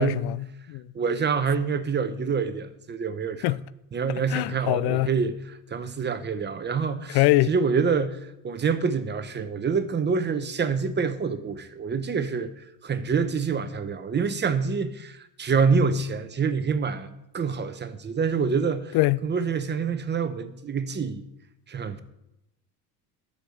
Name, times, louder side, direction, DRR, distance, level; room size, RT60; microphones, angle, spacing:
voice 1, 0.0-0.8 3.4-3.6 4.3-5.1 7.1-7.5 18.9-19.2, left 18 dB, 65° left, 0.5 m, -23 dB
voice 2, 0.9-3.6 3.9-17.1 17.3-19.0 19.2-21.2 21.7-22.0, right 5 dB, 25° right, 0.8 m, -26 dB
11.5 x 6.7 x 7.9 m
cardioid pair, 130°, 44 cm